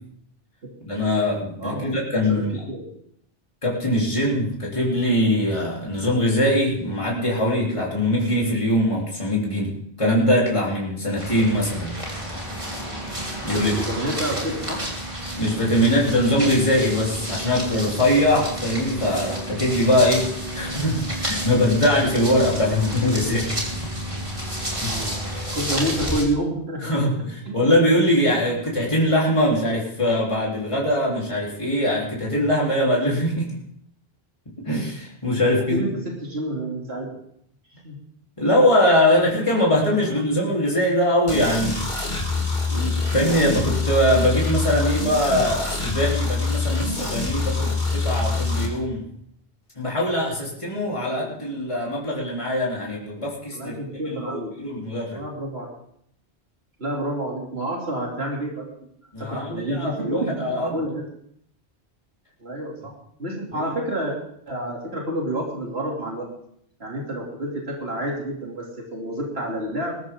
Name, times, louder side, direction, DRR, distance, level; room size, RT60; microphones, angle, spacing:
voice 1, 0.8-2.5 3.6-11.9 13.4-13.8 15.4-23.5 23.8-23.9 24.8-25.4 26.8-33.6 34.6-35.8 38.4-41.8 42.7-49.0 49.8-53.7 54.1-55.2 59.1-60.8 63.5-63.6, left 1 dB, 30° left, -4 dB, 3.7 m, -22 dB
voice 2, 2.3-2.9 11.4-11.5 13.5-14.8 22.7-23.2 24.9-25.1 25.5-26.8 27.4-27.7 35.3-37.2 37.7-38.0 50.9-51.4 53.5-54.5 55.1-55.7 56.8-58.7 59.3-61.1 62.4-62.9 63.2-64.2 64.5-66.3 66.8-68.6 68.9-70.0, right 1 dB, 75° right, -2 dB, 3.3 m, -29 dB
sound 1, 11.2-26.2, equal, 30° right, 4.0 m, -30 dB
sound 2, 41.3-48.7, left 3 dB, 45° left, 3.0 m, -25 dB
21.5 x 13.0 x 3.8 m, 0.69 s
omnidirectional pair, 1.1 m